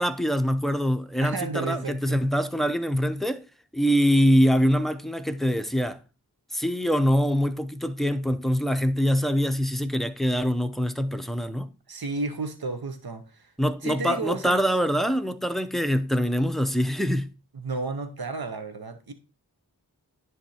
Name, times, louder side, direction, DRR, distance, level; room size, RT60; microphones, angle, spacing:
voice 1, 0.0-3.4 3.7-6.0 6.5-11.7 13.6-17.3, equal, ahead, 0.6 m, -24 dB
voice 2, 1.2-2.2 11.9-13.5 13.8-14.7 17.5-19.1, right 3 dB, 70° right, 1.0 m, -32 dB
10.5 x 3.5 x 4.3 m
wide cardioid pair, 45°, 38 cm